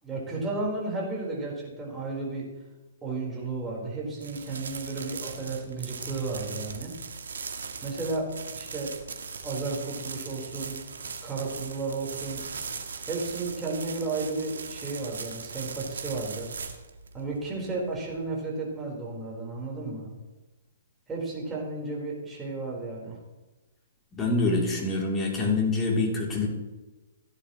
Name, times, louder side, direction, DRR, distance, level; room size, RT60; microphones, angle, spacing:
voice 1, 0.0-2.5 3.0-6.9 7.8-8.9 9.4-10.8 11.2-12.4 13.1-16.5 17.1-20.1 21.1-23.2, right 3 dB, 15° right, -4 dB, 4.5 m, -33 dB
sound 1, 4.2-18.2, right 5 dB, 70° right, 1.5 m, -39 dB
voice 2, 24.1-26.5, left 3 dB, 15° left, -2 dB, 3.3 m, -25 dB
16.0 x 10.5 x 3.2 m, 1.2 s
figure-of-eight pair, 125°, 0 cm